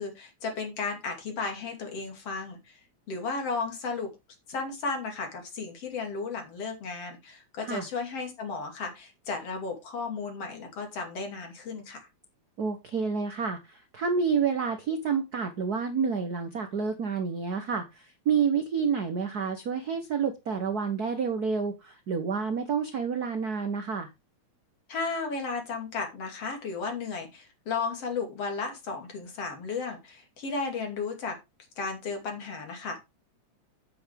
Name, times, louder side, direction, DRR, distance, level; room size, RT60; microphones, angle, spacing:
voice 1, 0.0-2.8 3.1-4.1 4.5-12.1 24.9-31.4 31.8-33.0, left 4 dB, 55° left, 4 dB, 3.5 m, -34 dB
voice 2, 12.6-24.1, right 6 dB, 80° right, 7 dB, 0.8 m, -29 dB
9.0 x 8.5 x 3.4 m, 0.23 s
omnidirectional pair, 3.4 m